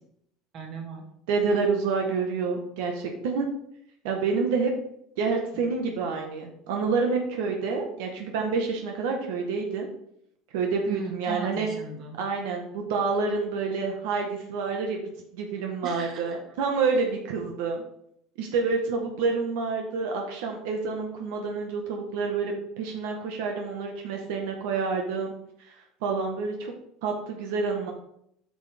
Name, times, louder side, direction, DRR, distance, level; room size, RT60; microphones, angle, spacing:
voice 1, 0.5-1.1 5.5-5.6 10.9-12.2 15.8-16.4, right 5 dB, 40° right, 1 dB, 2.1 m, -37 dB
voice 2, 1.3-3.5 4.0-4.7 5.2-9.9 10.5-11.7 12.2-15.0 15.3-17.8 18.4-25.3 25.7-25.8 26.0-26.7 27.0-27.9, right 4 dB, 80° right, 2 dB, 1.4 m, -28 dB
8.9 x 6.5 x 3.6 m, 0.72 s
cardioid pair, 145°, 0 cm